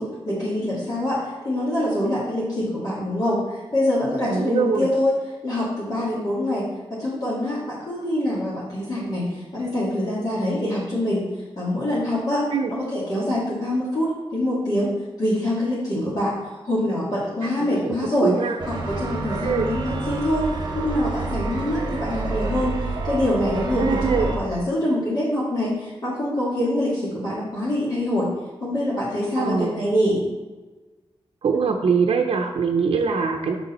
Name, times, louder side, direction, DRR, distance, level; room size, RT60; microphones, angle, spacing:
voice 1, 0.0-5.1 5.4-6.7 6.9-11.2 11.6-12.4 12.7-14.9 15.2-16.3 16.6-18.3 18.7-20.5 20.7-22.8 23.0-28.3 28.6-30.2, left 1 dB, 40° left, -8 dB, 2.1 m, -25 dB
voice 2, 4.3-4.9 12.5-12.7 17.8-17.9 18.2-18.6 19.4-19.7 23.8-24.3 29.4-29.7 31.4-33.6, right 5 dB, 70° right, 2 dB, 0.6 m, -22 dB
sound 1, 18.6-24.4, right 3 dB, 45° right, 1.1 m, -28 dB
6.7 x 6.2 x 4.3 m, 1.2 s
wide cardioid pair, 165°, 10 cm